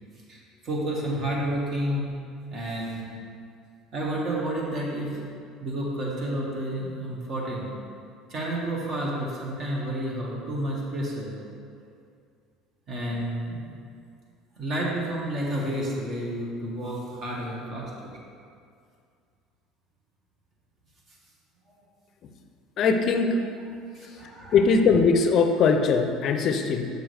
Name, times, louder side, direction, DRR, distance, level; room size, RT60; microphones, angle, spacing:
voice 1, 0.6-2.1 2.5-3.1 3.9-5.2 5.6-7.7 8.3-11.4 11.8-11.9 12.9-13.7 14.6-18.1 23.9-24.6, right 1 dB, 45° right, -3 dB, 1.6 m, -30 dB
voice 2, 22.8-23.4 24.5-26.9, left 5 dB, 50° left, 6 dB, 0.5 m, -21 dB
6.6 x 6.2 x 3.3 m, 2.3 s
supercardioid pair, 115°, 0 cm